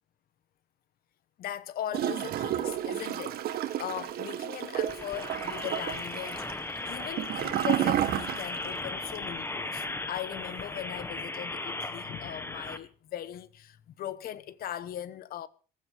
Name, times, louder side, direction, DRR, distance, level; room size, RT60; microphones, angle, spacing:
voice 1, 1.4-6.6 6.8-15.5, left 11 dB, 60° left, 1.1 m, -39 dB
Gurgling / Toilet flush, 1.9-8.8 9.1-9.2, right 12 dB, 65° right, 2.0 m, -31 dB
sound 1, 4.8-12.8, left 2 dB, 15° left, 1.5 m, -37 dB
16.0 x 15.5 x 5.0 m
cardioid pair, 110°, 17 cm